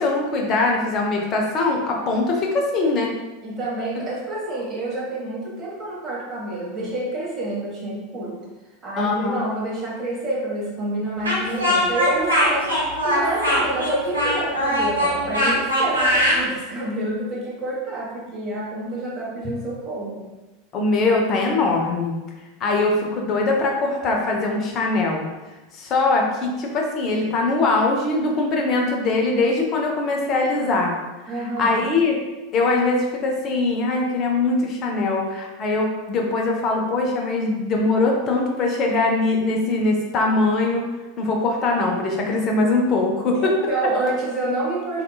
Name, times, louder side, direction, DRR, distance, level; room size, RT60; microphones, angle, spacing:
voice 1, 0.0-3.1 9.0-9.5 20.7-22.2 22.6-25.2 25.7-31.0 31.3-32.2 32.5-40.9 41.2-43.7, left 3 dB, 40° left, 0 dB, 0.5 m, -22 dB
voice 2, 3.4-8.4 8.8-12.7 13.0-20.2 31.3-31.8 43.3-45.0, right 2 dB, 30° right, -6 dB, 0.8 m, -28 dB
Speech, 11.2-16.4, equal, 85° right, 0.7 m, -21 dB
2.8 x 2.3 x 2.2 m, 1.1 s
figure-of-eight pair, 85°, 0 cm